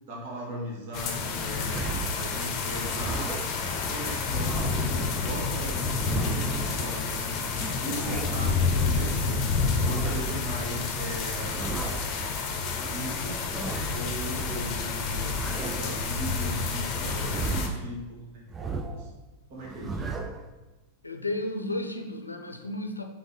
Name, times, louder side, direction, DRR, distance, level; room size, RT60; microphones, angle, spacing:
voice 1, 0.0-1.8 2.1-3.3 3.6-9.4 9.7-11.7 12.8-13.5 13.9-19.1 19.5-20.0, equal, 50° right, -4 dB, 2.1 m, -38 dB
sound 1, 0.9-17.7, left 4 dB, 35° left, 0.9 m, -29 dB
sound 2, 1.7-2.3 2.7-3.6 4.2-5.0 5.7-6.6 7.6-8.5 9.6-10.4 11.3-12.1 13.2-14.1 15.2-16.0 17.0-17.9 18.5-19.1 19.6-20.4, right 3 dB, 20° right, 0.5 m, -35 dB
voice 2, 21.0-23.0, left 1 dB, 85° left, 5 dB, 0.6 m, -33 dB
5.2 x 3.7 x 5.3 m, 1.2 s
figure-of-eight pair, 90°, 0 cm